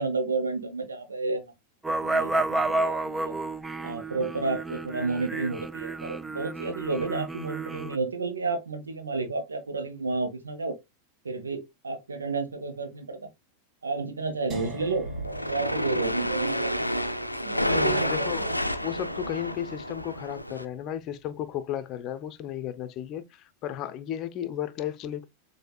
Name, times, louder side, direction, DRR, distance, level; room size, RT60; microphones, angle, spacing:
voice 1, 0.0-1.4 2.0-3.4 3.8-10.7 11.2-13.3 13.8-15.1 15.5-17.0 17.4-18.6, right 3 dB, 75° right, 1.0 m, -31 dB
sound 1, 1.8-8.0, right 2 dB, 10° right, 0.4 m, -31 dB
sound 2, 14.5-20.4, right 2 dB, 30° right, 1.3 m, -46 dB
sound 3, 15.0-20.6, equal, 90° left, 0.5 m, -29 dB
voice 2, 17.6-25.3, left 10 dB, 35° left, 0.6 m, -34 dB
7.7 x 2.7 x 2.3 m
figure-of-eight pair, 90°, 0 cm